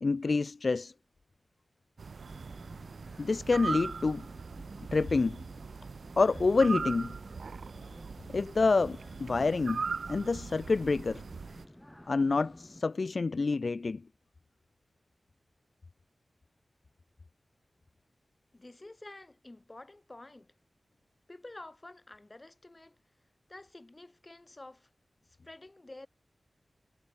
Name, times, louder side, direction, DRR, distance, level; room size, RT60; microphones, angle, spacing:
voice 1, 0.0-0.9 3.2-4.3 4.9-5.4 6.2-7.2 8.3-9.8 10.1-11.2 12.1-14.0, left 3 dB, 65° left, 0.3 m, -27 dB
sound 1, 2.0-11.7, right 5 dB, 85° right, 0.4 m, -40 dB
sound 2, 2.2-12.8, left 1 dB, 10° left, 1.3 m, -53 dB
sound 3, 6.3-11.4, right 2 dB, 45° right, 2.6 m, -60 dB
voice 2, 18.5-20.6 21.3-23.0 23.5-24.9 25.2-26.1, left 2 dB, 35° left, 6.2 m, -50 dB
cardioid pair, 40°, 0 cm